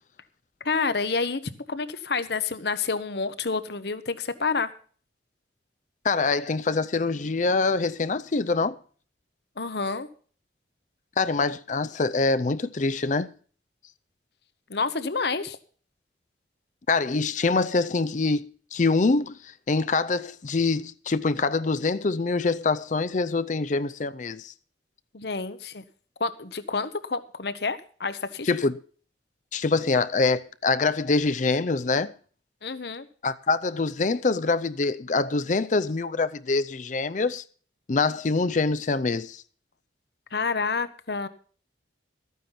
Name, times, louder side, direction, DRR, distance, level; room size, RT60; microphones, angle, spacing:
voice 1, 0.6-1.4 1.7-4.7 9.6-10.1 14.7-15.6 25.1-25.8 26.2-28.5 32.6-33.1 40.3-41.3, left 4 dB, 60° left, 1.0 m, -28 dB
voice 2, 6.0-8.8 11.2-13.3 16.9-24.5 28.4-28.8 29.5-32.1 33.2-37.4 37.9-39.4, left 3 dB, 40° left, 0.5 m, -25 dB
13.5 x 9.4 x 5.7 m
head